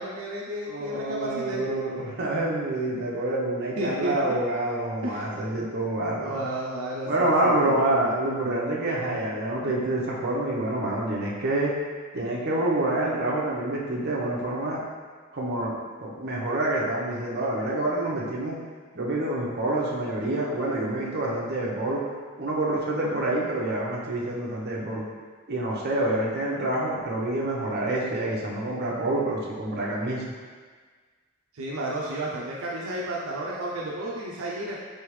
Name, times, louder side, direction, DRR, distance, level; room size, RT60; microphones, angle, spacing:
voice 1, 0.0-1.6 3.8-4.1 5.0-5.6 6.2-8.2 31.5-34.8, right 1 dB, 80° right, -4 dB, 0.5 m, -32 dB
voice 2, 0.7-6.4 7.0-11.7 12.1-14.8 15.3-18.6 18.9-22.0 22.4-25.0 25.5-30.2, right 1 dB, 50° right, -4 dB, 0.8 m, -27 dB
4.1 x 3.4 x 3.1 m, 1.5 s
head